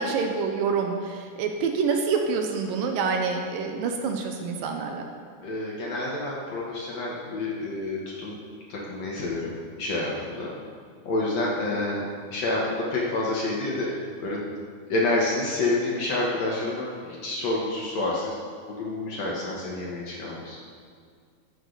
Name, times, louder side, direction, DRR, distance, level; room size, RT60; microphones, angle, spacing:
voice 1, 0.0-5.1, right 5 dB, 75° right, 3 dB, 2.4 m, -27 dB
voice 2, 5.4-8.4 8.7-10.5 11.1-12.0 12.3-14.4 14.9-18.4 18.7-20.6, left 2 dB, 60° left, -4 dB, 2.0 m, -28 dB
14.5 x 8.1 x 3.9 m, 2.1 s
omnidirectional pair, 4.3 m